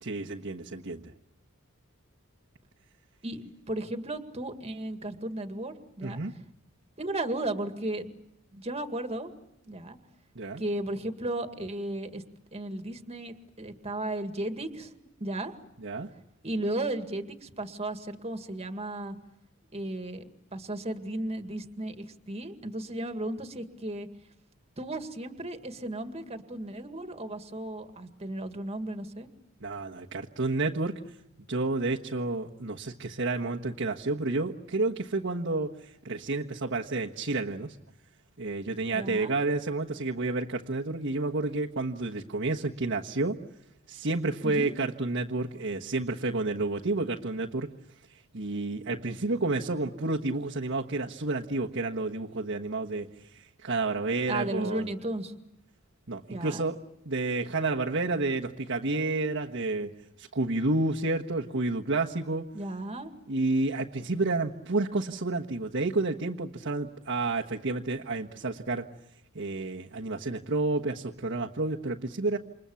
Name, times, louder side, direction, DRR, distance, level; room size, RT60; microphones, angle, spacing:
voice 1, 0.0-1.0 6.0-6.3 10.3-10.6 15.8-16.1 29.6-31.0 31.5-37.7 38.4-43.4 43.9-47.7 48.3-53.1 53.3-54.9 56.1-56.8 57.0-59.9 60.2-62.5 63.3-68.8 69.3-72.4, right 2 dB, 60° right, -1 dB, 1.4 m, -30 dB
voice 2, 3.2-6.2 7.0-8.1 8.5-9.3 9.7-10.0 10.6-12.2 12.5-14.9 15.2-15.5 16.4-19.2 19.7-20.2 20.5-24.1 24.8-29.3 38.9-39.3 44.4-44.7 54.3-55.3 56.3-56.7 62.5-63.1, right 1 dB, 30° right, 7 dB, 2.0 m, -35 dB
29.0 x 26.5 x 7.1 m, 0.89 s
head